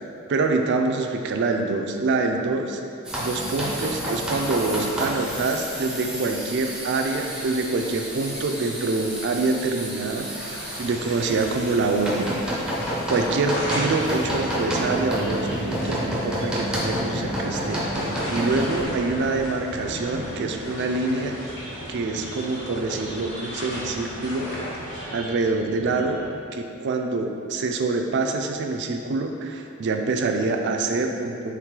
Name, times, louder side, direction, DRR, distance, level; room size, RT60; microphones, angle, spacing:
voice 1, 0.3-2.8 3.2-12.3 13.1-17.9 18.3-21.4 21.9-24.5 25.1-26.2 26.5-31.6, right 3 dB, 55° right, 4 dB, 0.4 m, -25 dB
sound 1, 3.0-18.8, equal, 5° right, 0.6 m, -30 dB
sound 2, 10.4-25.0, equal, 55° left, 1.1 m, -36 dB
sound 3, 13.5-26.4, right 1 dB, 90° right, 0.7 m, -39 dB
4.6 x 3.1 x 3.7 m, 2.6 s
head